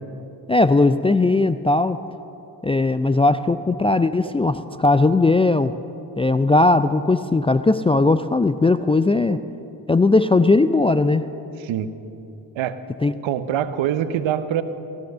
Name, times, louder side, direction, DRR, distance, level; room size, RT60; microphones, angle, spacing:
voice 1, 0.5-2.0 2.6-5.7 6.2-9.4 9.9-11.3 13.0-13.1, left 2 dB, 15° left, 10 dB, 0.3 m, -18 dB
voice 2, 11.6-11.9 12.6-12.8 13.2-14.6, right 10 dB, 70° right, 12 dB, 0.9 m, -24 dB
16.0 x 11.5 x 6.7 m, 2.9 s
hypercardioid pair, 50°, 48 cm